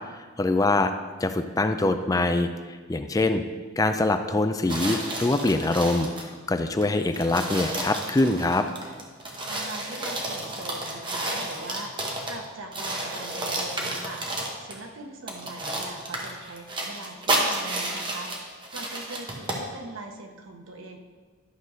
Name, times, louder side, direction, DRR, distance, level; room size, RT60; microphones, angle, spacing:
voice 1, 0.4-0.9 1.2-2.5 2.9-3.4 3.8-6.1 6.5-8.7, left 2 dB, 15° left, 8 dB, 0.4 m, -23 dB
sound 1, 4.7-6.3 6.8-6.9 7.1-12.4 12.7-14.8 15.3-19.7, right 1 dB, 25° right, 1.2 m, -31 dB
voice 2, 9.5-14.3 14.6-18.3 18.7-21.0, right 2 dB, 85° right, 3 dB, 1.2 m, -41 dB
11.5 x 4.1 x 6.3 m, 1.5 s
head